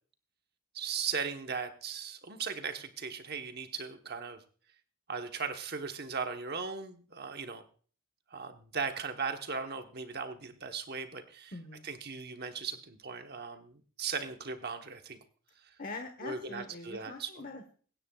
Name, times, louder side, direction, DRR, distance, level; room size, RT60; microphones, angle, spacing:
voice 1, 0.7-4.4 5.1-7.6 8.3-11.5 11.8-15.2 15.6-15.8 16.2-17.3, right 5 dB, 45° right, 6 dB, 1.1 m, -38 dB
voice 2, 11.5-11.9 15.8-17.8, left 3 dB, 40° left, 4 dB, 1.1 m, -43 dB
23.5 x 9.7 x 2.3 m, 0.42 s
head